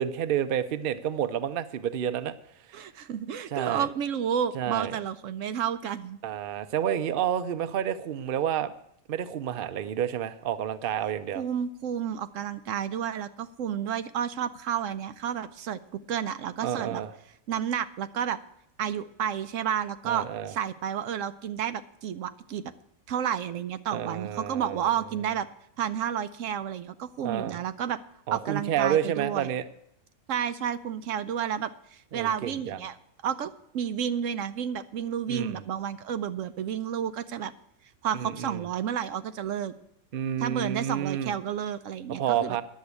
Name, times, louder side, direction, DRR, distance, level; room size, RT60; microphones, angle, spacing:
voice 1, 0.0-2.3 2.7-2.8 3.5-3.9 4.5-5.0 6.2-8.7 9.1-11.4 16.6-17.1 20.0-20.5 23.9-24.9 27.2-27.6 28.3-29.6 32.1-32.8 35.3-35.6 38.1-38.6 40.1-41.3 42.2-42.6, right 9 dB, 50° right, 12 dB, 0.7 m, -29 dB
voice 2, 2.7-6.2 11.3-17.0 17.5-18.4 18.8-22.7 23.1-25.5 25.8-28.0 28.3-29.5 30.3-33.0 33.2-37.5 38.0-39.7 40.4-42.6, right 9 dB, 75° right, 11 dB, 1.0 m, -31 dB
10.5 x 7.4 x 8.2 m, 0.75 s
omnidirectional pair, 1.4 m